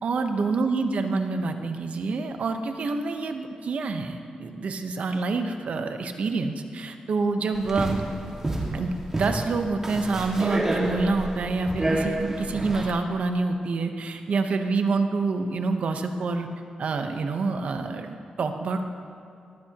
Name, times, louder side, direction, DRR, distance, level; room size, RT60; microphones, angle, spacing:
voice 1, 0.0-8.0 8.7-16.5 16.8-18.8, right 3 dB, 65° right, 6 dB, 0.9 m, -27 dB
sound 1, 7.5-12.9, right 1 dB, 20° right, 1.9 m, -29 dB
19.5 x 15.0 x 2.9 m, 2.4 s
wide cardioid pair, 160°, 2 cm